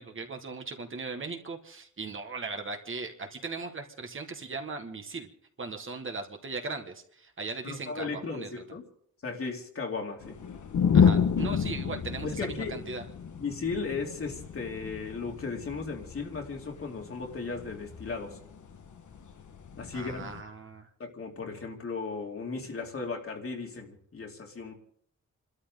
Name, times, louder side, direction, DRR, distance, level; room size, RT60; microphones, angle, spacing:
voice 1, 0.0-5.3 5.6-8.6 10.9-13.0 19.9-20.9, right 4 dB, 45° right, 4 dB, 1.7 m, -38 dB
voice 2, 7.6-8.8 9.2-10.4 12.2-12.8 13.4-18.4 19.8-20.3 21.0-24.7, left 4 dB, 50° left, 2 dB, 2.6 m, -36 dB
sound 1, 10.2-20.4, left 7 dB, 75° left, 1.5 m, -30 dB
29.0 x 13.0 x 3.8 m, 0.64 s
wide cardioid pair, 170°, 30 cm